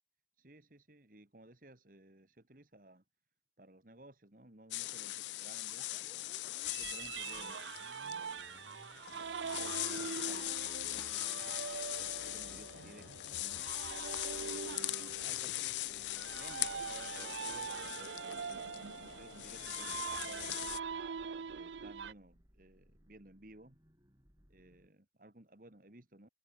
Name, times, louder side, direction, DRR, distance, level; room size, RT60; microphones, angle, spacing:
voice 1, 0.3-3.0 3.6-6.4 6.8-8.8 9.1-11.6 12.2-13.7 14.4-20.7 21.5-23.8 24.5-26.3, right 1 dB, 50° right, 2.0 m, -58 dB
sound 1, 4.7-20.8, left 17 dB, 75° left, 0.3 m, -41 dB
sound 2, 5.7-24.9, equal, 20° right, 7.5 m, -64 dB
sound 3, 6.6-22.1, right 6 dB, 85° right, 0.5 m, -43 dB
open air
head